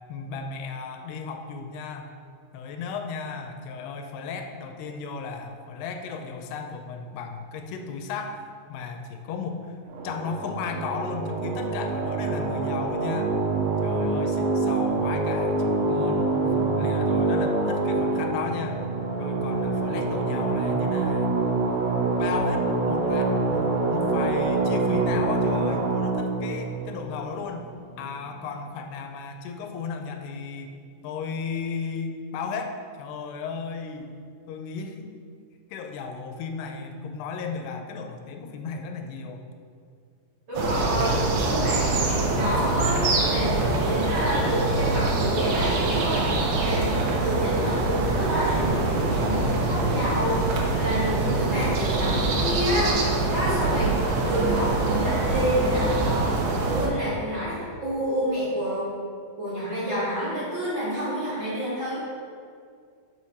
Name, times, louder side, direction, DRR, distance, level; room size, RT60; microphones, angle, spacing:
voice 1, 0.1-2.1 2.5-9.8 10.0-13.3 13.8-18.8 19.2-21.4 22.2-27.7 28.0-30.8 31.0-34.1 34.5-35.1 35.7-39.5, left 5 dB, 80° left, 5 dB, 2.6 m, -35 dB
sound 1, 9.9-28.0, right 3 dB, 90° right, 1.8 m, -26 dB
voice 2, 40.5-53.0 53.3-54.0 54.2-56.3 56.6-58.9 59.4-62.0, equal, 40° right, -12 dB, 2.1 m, -28 dB
sound 2, 40.5-56.9, right 2 dB, 70° right, 2.7 m, -24 dB
5.8 x 5.7 x 6.3 m, 2.2 s
omnidirectional pair, 4.9 m